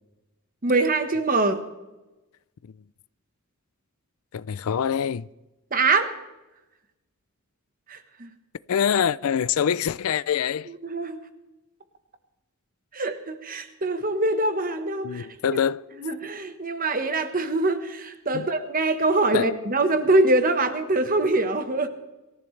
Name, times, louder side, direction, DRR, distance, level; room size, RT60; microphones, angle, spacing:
voice 1, 0.6-1.6 5.7-6.1 7.9-8.3 10.8-11.2 12.9-15.3 15.5-15.6 16.0-21.9, right 2 dB, 40° right, 1.2 m, -24 dB
voice 2, 4.3-5.3 8.7-10.7 15.0-15.9 18.3-18.5 19.3-19.5, left 8 dB, 75° left, 0.4 m, -25 dB
24.0 x 14.0 x 3.3 m
head